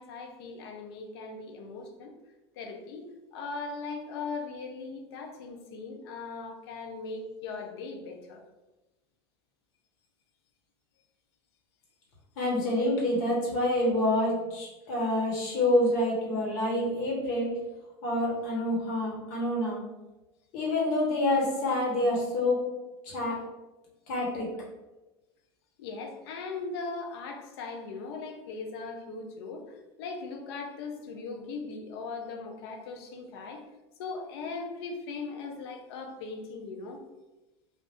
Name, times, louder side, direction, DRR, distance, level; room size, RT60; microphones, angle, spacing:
voice 1, 0.0-2.1 2.6-8.4 18.6-18.7 25.8-33.7 34.0-37.0, left 4 dB, 75° left, 3 dB, 0.6 m, -39 dB
voice 2, 12.4-17.5 18.0-19.8 20.5-22.6 23.0-23.4 24.1-24.5, left 1 dB, 60° left, -3 dB, 1.3 m, -27 dB
2.6 x 2.5 x 3.4 m, 1.1 s
supercardioid pair, 105°, 13 cm